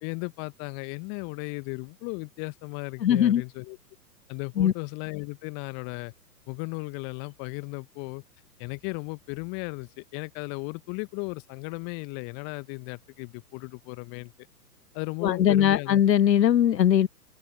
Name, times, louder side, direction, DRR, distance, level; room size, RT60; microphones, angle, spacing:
voice 1, 0.0-3.8 4.3-6.1 6.5-8.2 8.6-14.3 14.9-16.0, left 37 dB, 25° left, 1.0 m, -36 dB
voice 2, 3.0-3.4 4.6-4.7 15.2-17.1, left 10 dB, 80° left, 0.6 m, -20 dB
figure-of-eight pair, 115°, 49 cm